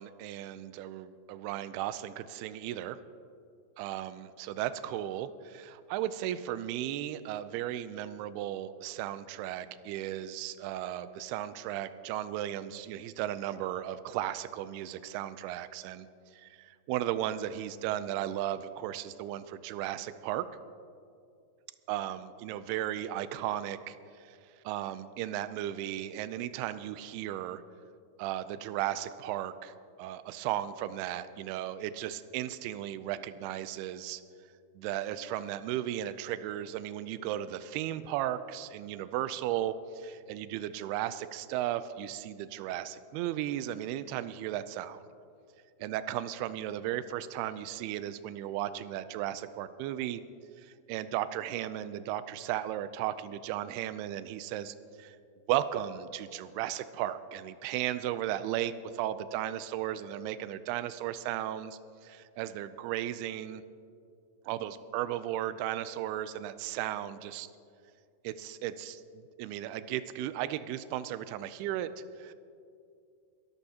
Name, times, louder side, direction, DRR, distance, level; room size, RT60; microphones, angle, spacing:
voice 1, 0.0-3.0 3.8-20.5 21.9-24.4 24.6-27.6 28.2-34.2 34.8-45.0 45.8-50.2 50.6-55.2 55.5-63.6 64.5-67.5 68.2-72.3, right 12 dB, 80° right, 13 dB, 2.4 m, -35 dB
22.5 x 13.5 x 2.9 m, 2.5 s
omnidirectional pair, 4.8 m